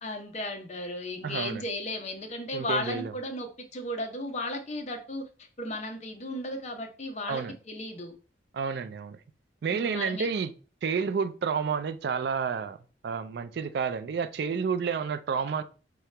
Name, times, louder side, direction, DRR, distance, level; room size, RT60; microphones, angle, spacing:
voice 1, 0.0-5.2 5.6-8.1 9.7-10.3, left 1 dB, 40° left, 0.7 m, -35 dB
voice 2, 1.2-1.6 2.5-3.1 7.3-7.6 8.5-9.2 9.6-10.5 10.8-12.8 13.0-15.6, right 6 dB, 60° right, 0.3 m, -30 dB
4.7 x 2.9 x 3.2 m
head